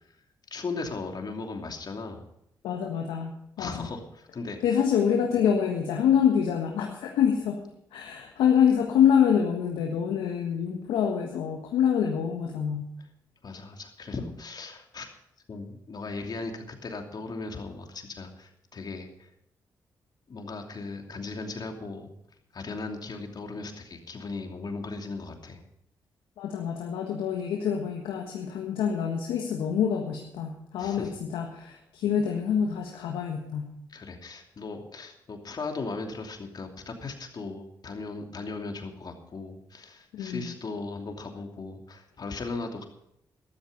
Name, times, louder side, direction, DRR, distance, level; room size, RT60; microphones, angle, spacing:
voice 1, 0.5-2.3 3.6-4.8 13.4-15.1 15.5-19.3 20.3-22.1 22.5-25.6 30.8-31.1 33.9-42.8, left 3 dB, 50° left, 4 dB, 2.8 m, -37 dB
voice 2, 2.6-3.9 4.6-7.6 7.9-12.9 26.4-33.7 40.1-40.4, left 8 dB, 85° left, 1 dB, 1.5 m, -26 dB
13.5 x 13.0 x 5.3 m, 0.76 s
supercardioid pair, 45°, 9 cm